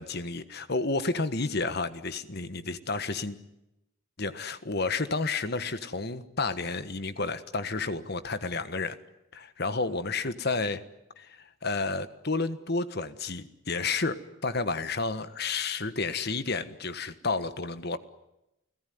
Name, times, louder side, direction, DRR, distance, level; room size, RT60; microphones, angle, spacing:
voice 1, 0.0-3.4 4.2-9.0 9.3-10.8 11.2-14.2 14.4-18.0, left 3 dB, 50° left, 12 dB, 1.4 m, -31 dB
29.5 x 17.5 x 9.5 m, 0.89 s
head